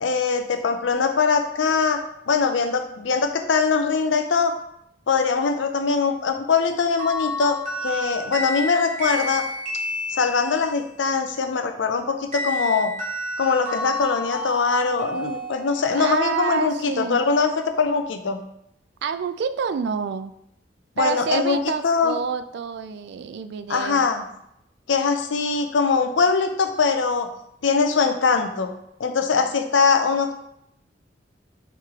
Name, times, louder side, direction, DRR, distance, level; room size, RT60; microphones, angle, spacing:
voice 1, 0.0-2.0 2.3-4.6 5.1-9.4 10.1-12.9 13.4-18.4 21.0-22.2 23.7-24.2 24.9-27.3 27.6-28.7 29.0-30.3, left 5 dB, 80° left, 7 dB, 0.5 m, -22 dB
sound 1, 7.0-10.7 12.3-16.1, left 1 dB, 40° right, 1.3 m, -30 dB
voice 2, 15.9-17.2 19.0-20.3 21.0-24.1, right 6 dB, 65° right, 12 dB, 0.3 m, -28 dB
4.6 x 3.2 x 3.7 m, 0.76 s
head